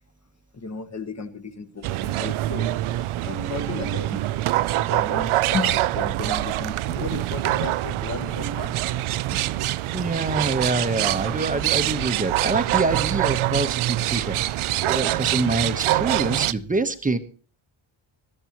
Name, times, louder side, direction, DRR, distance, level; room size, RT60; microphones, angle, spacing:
voice 1, 0.5-3.0 3.2-4.2 4.9-8.8 9.3-9.4, left 5 dB, 30° left, 1.4 m, -34 dB
sound 1, 1.8-16.5, right 15 dB, 75° right, 0.6 m, -25 dB
sound 2, 3.2-4.5 5.0-6.7 7.0-9.7, right 4 dB, 40° right, 1.4 m, -41 dB
voice 2, 9.9-17.2, right 3 dB, 15° right, 1.0 m, -26 dB
22.5 x 13.5 x 3.0 m
wide cardioid pair, 175°, 50 cm